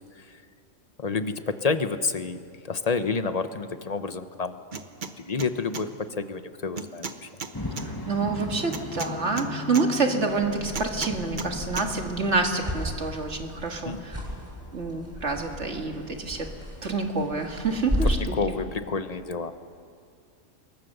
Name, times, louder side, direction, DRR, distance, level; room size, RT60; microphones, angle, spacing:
voice 1, 1.0-4.6 5.2-7.3 13.8-14.0 18.0-19.5, left 4 dB, 35° left, 10 dB, 0.8 m, -29 dB
sound 1, 4.7-5.1 5.4-5.8 6.8-7.9 8.7-9.9 10.7-11.5 11.8-11.9, right 4 dB, 40° right, 1.1 m, -34 dB
sound 2, 7.5-13.2, left 2 dB, 15° left, 1.7 m, -38 dB
voice 2, 7.8-14.2 14.7-16.5 16.8-18.4, right 3 dB, 55° right, 3 dB, 2.2 m, -27 dB
sound 3, 10.3-18.4, equal, 10° right, 7.9 m, -34 dB
27.0 x 22.5 x 6.7 m, 2.3 s
omnidirectional pair, 1.4 m